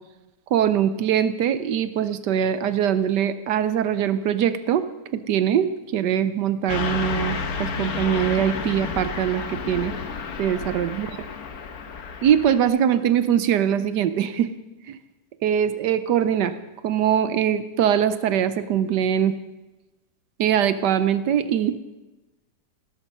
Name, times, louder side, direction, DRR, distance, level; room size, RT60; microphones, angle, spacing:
voice 1, 0.5-4.8 5.1-9.9 10.4-11.3 12.2-14.5 14.9-15.0 15.4-16.5 16.8-19.4 20.4-21.8, right 9 dB, 75° right, 13 dB, 1.3 m, -22 dB
Car passing by / Truck, 6.7-12.6, left 5 dB, 60° left, 1.6 m, -31 dB
17.0 x 13.5 x 5.5 m, 1.1 s
omnidirectional pair, 1.9 m